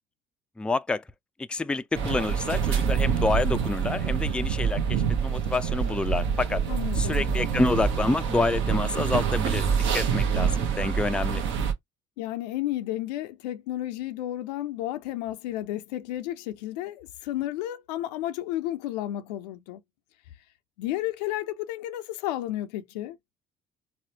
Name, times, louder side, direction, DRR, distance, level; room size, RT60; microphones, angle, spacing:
voice 1, 0.6-1.0 1.5-6.6 7.0-9.7 9.9-11.4, left 3 dB, 5° left, 0.3 m, -28 dB
sound 1, 2.0-11.7, right 7 dB, 65° right, 0.8 m, -26 dB
voice 2, 6.7-7.2 12.2-19.8 20.8-23.2, left 14 dB, 80° left, 0.4 m, -32 dB
4.1 x 2.1 x 2.7 m
hypercardioid pair, 55°, 21 cm